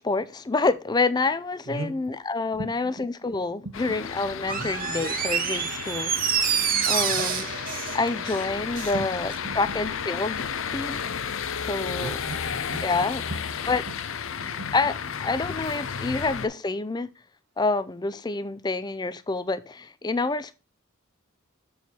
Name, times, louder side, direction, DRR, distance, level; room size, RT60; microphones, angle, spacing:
voice 1, 0.0-6.1 6.4-10.4 10.7-11.0 11.6-12.2 12.8-13.2 13.7-13.9 14.7-17.1 17.6-20.6, left 3 dB, 20° left, 0.4 m, -28 dB
voice 2, 1.7-2.0 2.6-3.1 3.6-3.7 4.5-4.7 7.1-7.2 8.9-9.1 9.4-9.6 12.0-12.8 14.3-14.7, right 2 dB, 65° right, 1.0 m, -37 dB
sound 1, 3.7-16.5, left 7 dB, 65° left, 0.6 m, -33 dB
Door, 4.4-9.0 9.3-9.4, right 8 dB, 40° right, 0.8 m, -27 dB
6.9 x 4.7 x 4.3 m
head